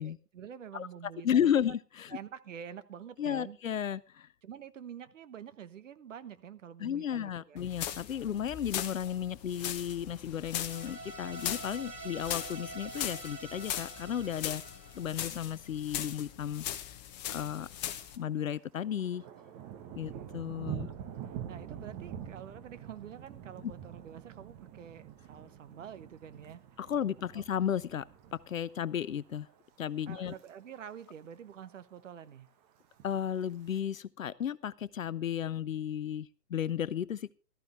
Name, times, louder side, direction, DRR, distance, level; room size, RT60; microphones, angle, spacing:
voice 1, 0.0-1.5 2.1-3.6 4.4-7.6 20.1-20.3 20.8-21.0 21.5-26.6 27.3-27.4 30.1-32.5, right 8 dB, 50° right, 1.1 m, -47 dB
voice 2, 1.2-2.2 3.2-4.3 6.8-14.6 14.9-16.6 17.3-17.7 18.2-19.2 20.0-20.9 23.6-23.7 26.8-28.0 28.3-29.5 29.8-30.3 33.0-37.3, left 9 dB, 55° left, 0.6 m, -33 dB
sound 1, 7.6-18.2, left 11 dB, 25° left, 1.1 m, -40 dB
sound 2, 10.6-15.8, right 2 dB, 75° right, 1.9 m, -46 dB
Thunder, 17.7-18.2 18.5-28.9 29.2-29.6 30.0-30.5 30.8-30.9 31.0-31.1 31.5-32.1 32.8-33.8, right 9 dB, 20° right, 1.1 m, -46 dB
15.5 x 13.5 x 3.5 m
figure-of-eight pair, 120°, 48 cm